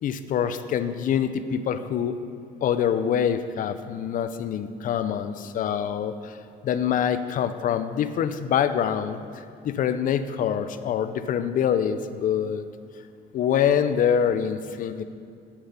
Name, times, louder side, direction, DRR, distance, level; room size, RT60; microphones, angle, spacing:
voice 1, 0.0-2.2 2.6-6.4 6.6-12.6 13.3-15.0, left 8 dB, 50° left, 11 dB, 0.5 m, -25 dB
8.7 x 5.8 x 6.7 m, 2.3 s
cardioid pair, 110°, 17 cm